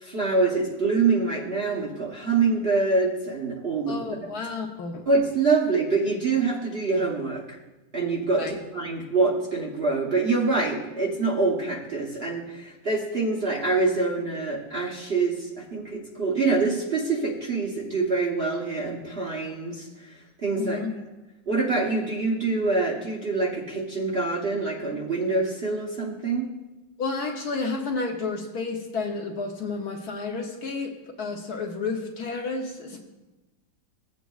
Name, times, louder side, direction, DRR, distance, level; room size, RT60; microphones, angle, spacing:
voice 1, 0.0-4.0 5.1-7.6 7.9-20.8 21.5-26.5, right 3 dB, 40° right, -4 dB, 0.9 m, -25 dB
voice 2, 3.9-5.1 8.4-8.5 20.6-20.9 27.0-30.9 31.2-33.0, left 4 dB, 60° left, 1 dB, 1.1 m, -31 dB
15.5 x 8.1 x 2.3 m, 1.1 s
omnidirectional pair, 2.1 m